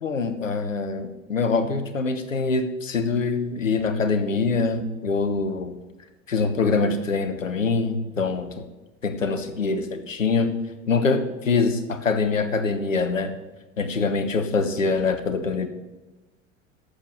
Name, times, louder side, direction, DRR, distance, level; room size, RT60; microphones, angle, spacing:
voice 1, 0.0-5.7 6.3-8.6 9.0-10.5 10.9-13.3 13.8-15.7, left 4 dB, 80° left, 9 dB, 1.2 m, -24 dB
11.5 x 7.4 x 6.5 m, 1.1 s
figure-of-eight pair, 75°, 38 cm